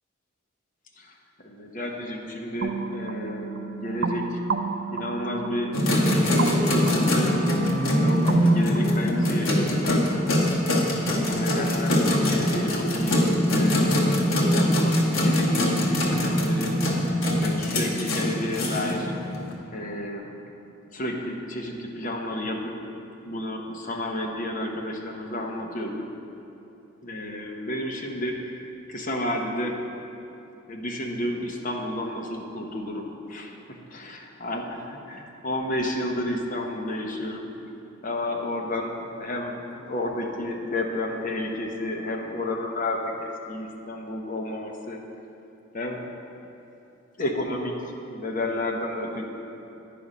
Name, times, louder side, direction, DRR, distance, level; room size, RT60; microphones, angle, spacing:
voice 1, 1.0-4.4 4.9-7.4 7.9-10.2 11.2-13.8 14.4-16.8 17.4-19.1 19.7-20.4 20.9-22.8 23.2-26.1 27.0-29.8 30.7-33.5 33.9-37.5 38.0-45.0 45.7-46.0 47.2-47.8 48.1-49.2, left 1 dB, 40° left, 1 dB, 0.8 m, -31 dB
sound 1, 2.6-10.2, right 4 dB, 50° right, 0.3 m, -33 dB
sound 2, 5.7-19.5, left 1 dB, 70° left, 1.1 m, -23 dB
9.4 x 5.4 x 5.0 m, 3.0 s
head